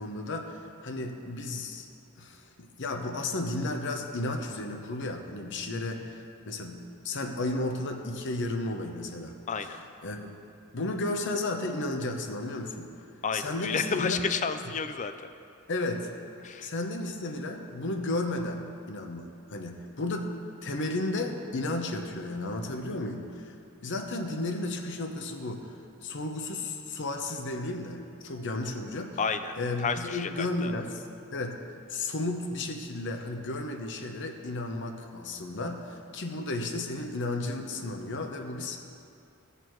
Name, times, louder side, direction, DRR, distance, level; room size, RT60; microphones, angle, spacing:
voice 1, 0.0-1.9 2.2-9.3 10.0-10.4 10.7-12.9 13.3-14.2 15.7-16.1 16.6-20.3 20.6-23.5 23.8-25.7 26.0-29.2 29.6-31.0 31.3-31.6 31.9-38.8, left 2 dB, 55° left, 4 dB, 0.8 m, -33 dB
voice 2, 9.5-9.8 13.2-15.3 16.4-16.7 29.2-30.7, left 5 dB, 35° left, 9 dB, 0.4 m, -31 dB
17.0 x 6.7 x 3.1 m, 2.5 s
head